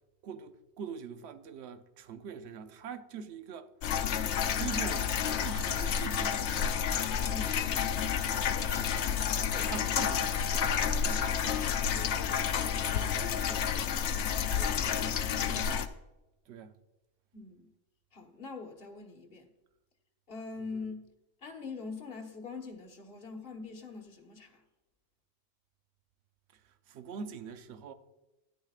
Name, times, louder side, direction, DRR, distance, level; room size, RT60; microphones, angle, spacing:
voice 1, 0.2-3.7 4.5-6.7 9.7-11.4 15.5-15.7 16.5-16.7 26.5-27.9, right 6 dB, 60° right, 0.9 m, -43 dB
sound 1, 3.8-15.9, left 8 dB, 65° left, 0.9 m, -30 dB
voice 2, 7.2-7.7 8.5-9.1 9.3-9.8 11.7-15.8 17.3-17.7 18.1-19.5 20.3-21.1 21.4-24.6, left 4 dB, 45° left, 1.4 m, -45 dB
13.5 x 10.5 x 2.4 m
omnidirectional pair, 1.3 m